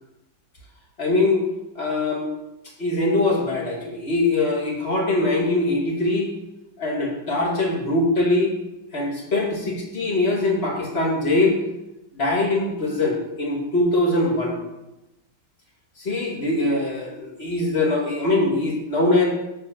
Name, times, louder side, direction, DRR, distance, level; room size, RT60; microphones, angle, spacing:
voice 1, 1.0-1.5 1.8-2.3 2.8-6.3 6.8-8.5 8.9-11.6 12.1-14.6 16.0-19.2, left 2 dB, 30° left, -1 dB, 2.1 m, -22 dB
6.8 x 5.6 x 7.0 m, 0.93 s
omnidirectional pair, 2.1 m